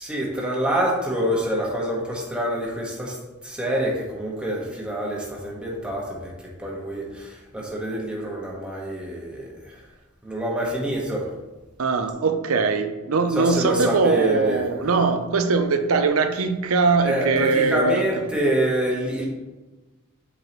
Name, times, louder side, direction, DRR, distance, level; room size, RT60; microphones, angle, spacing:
voice 1, 0.0-3.2 3.4-6.3 6.6-9.8 10.2-11.3 13.3-14.7 17.0-19.3, right 1 dB, 5° right, -3 dB, 1.4 m, -26 dB
voice 2, 11.8-18.1, right 4 dB, 75° right, 8 dB, 0.6 m, -21 dB
7.7 x 4.7 x 3.0 m, 1.2 s
head